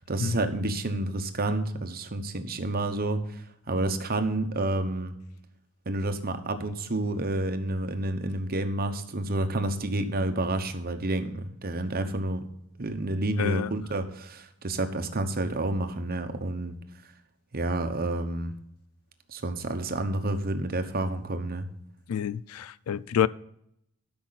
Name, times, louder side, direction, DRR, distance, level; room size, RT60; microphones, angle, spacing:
voice 1, 0.1-3.2 3.7-5.1 5.9-12.4 12.8-16.7 17.5-18.5 19.3-21.7, right 2 dB, 45° right, 1.0 m, -29 dB
voice 2, 13.4-13.7 22.1-23.3, left 9 dB, 75° left, 0.4 m, -28 dB
12.5 x 5.8 x 4.0 m
head